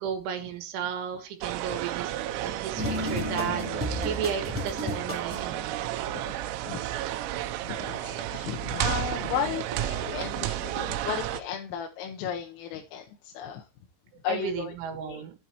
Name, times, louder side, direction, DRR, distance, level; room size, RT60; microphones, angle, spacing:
voice 1, 0.0-2.1 2.4-5.9 14.3-15.3, right 8 dB, 70° right, 4.0 m, -34 dB
sound 1, 1.4-11.4, right 13 dB, 90° right, 3.5 m, -32 dB
sound 2, 2.8-5.6, left 1 dB, 5° right, 1.9 m, -32 dB
voice 2, 6.7-13.7 14.2-14.8 15.1-15.2, left 8 dB, 80° left, 3.6 m, -35 dB
13.0 x 8.7 x 3.0 m
omnidirectional pair, 5.9 m